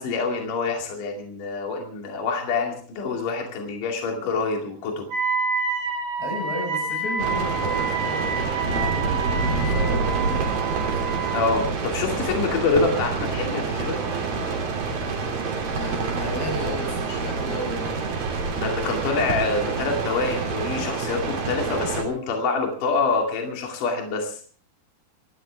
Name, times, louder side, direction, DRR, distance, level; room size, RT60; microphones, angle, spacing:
voice 1, 0.0-5.1 11.3-14.0 18.6-24.4, left 4 dB, 55° left, 1 dB, 3.8 m, -26 dB
Wind instrument woodwind instrument, 5.1-11.5, right 5 dB, 85° right, 6.7 m, -28 dB
voice 2, 6.2-11.1 15.7-18.1, left 1 dB, 85° left, 3 dB, 8.1 m, -34 dB
sound 1, 7.2-22.0, right 4 dB, 60° right, 4.6 m, -27 dB
27.0 x 12.5 x 3.4 m, 0.43 s
omnidirectional pair, 4.6 m